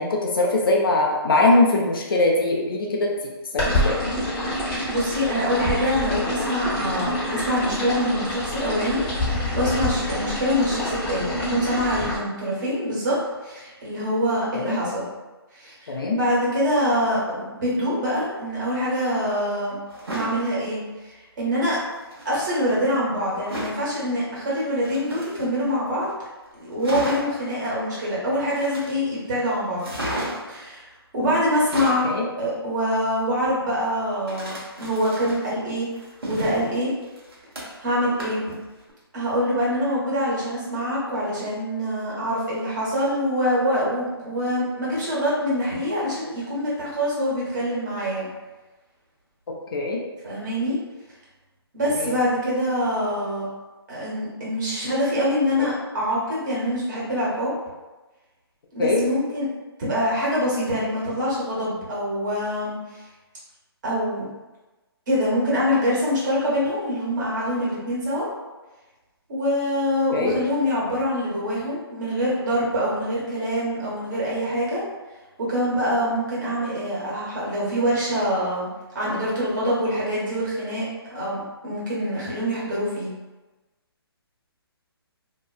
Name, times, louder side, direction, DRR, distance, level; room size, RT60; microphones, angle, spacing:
voice 1, 0.0-4.0 14.5-14.8 15.9-16.2 32.0-32.2 49.7-50.0 52.0-52.1 58.8-59.0 70.1-70.3, left 2 dB, 60° left, -1 dB, 0.6 m, -21 dB
sound 1, 3.6-12.2, left 1 dB, 20° left, 0.8 m, -26 dB
voice 2, 4.5-13.2 13.4-15.1 15.5-19.7 20.1-21.8 22.2-26.1 26.5-29.9 30.5-32.1 32.4-35.9 36.2-36.9 37.8-38.5 39.1-48.3 50.2-50.8 51.7-53.5 53.9-57.5 58.7-59.5 59.8-63.0 63.8-64.2 65.1-68.2 69.3-74.8 75.4-78.7 78.9-80.8 81.1-83.1, equal, 45° right, -7 dB, 1.3 m, -25 dB
sound 2, 19.9-20.4 21.9-22.4 23.5-23.8 24.7-25.7 26.1-26.2 26.5-26.6 26.8-27.4 28.5-29.2 29.8-30.6 31.5-32.1 34.3-35.5 35.9-37.9 38.2-38.5 38.9-39.0, right 1 dB, 65° right, 1.0 m, -33 dB
2.8 x 2.3 x 2.3 m, 1.1 s
figure-of-eight pair, 140°, 13 cm